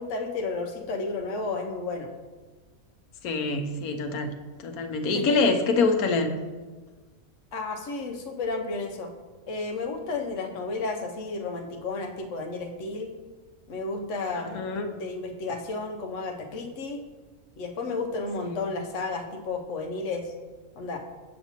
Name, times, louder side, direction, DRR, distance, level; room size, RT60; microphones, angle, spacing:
voice 1, 0.0-2.1 5.1-5.6 7.5-9.1 9.5-13.1 13.7-14.6 14.9-17.0 17.6-20.3 20.8-21.0, left 3 dB, 65° left, 1.0 m, -32 dB
voice 2, 3.2-4.3 4.6-6.3 14.5-14.9 18.5-18.6, left 3 dB, 90° left, 1.1 m, -25 dB
6.8 x 6.5 x 2.9 m
omnidirectional pair, 1.5 m